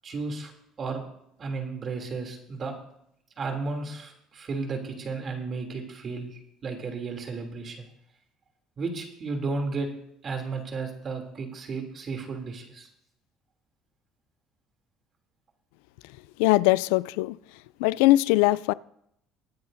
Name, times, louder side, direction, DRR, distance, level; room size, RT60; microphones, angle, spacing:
voice 1, 0.0-0.5 0.8-1.0 1.4-2.7 3.4-7.8 8.8-9.9 10.2-12.9, right 4 dB, 40° right, 2.9 m, -33 dB
voice 2, 16.4-17.4 17.8-18.7, left 18 dB, 85° left, 0.3 m, -21 dB
22.5 x 9.3 x 2.7 m
supercardioid pair, 90°, 0 cm